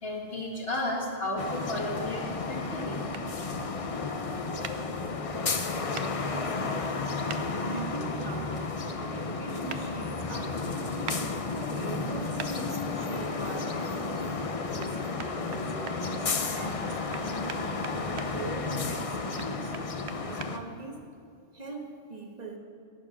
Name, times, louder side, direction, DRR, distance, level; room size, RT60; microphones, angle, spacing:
voice 1, 0.0-3.0, left 1 dB, 50° left, -1 dB, 2.4 m, -33 dB
sound 1, 1.4-20.6, left 4 dB, 35° left, 0.6 m, -32 dB
sound 2, 3.1-3.3 4.6-4.8 5.9-6.1 7.3-7.4 9.7-9.8 11.1-11.2 12.4-12.5 14.8-14.9 15.2-16.0 17.1-18.3 19.4-20.5, right 8 dB, 65° right, 1.0 m, -39 dB
voice 2, 6.3-7.1 7.6-8.8 9.1-11.1 11.5-14.4 14.7-17.9 18.3-19.8 20.0-21.1 21.5-22.6, right 3 dB, 35° right, 3 dB, 1.4 m, -42 dB
14.5 x 10.5 x 6.3 m, 2.2 s
omnidirectional pair, 1.3 m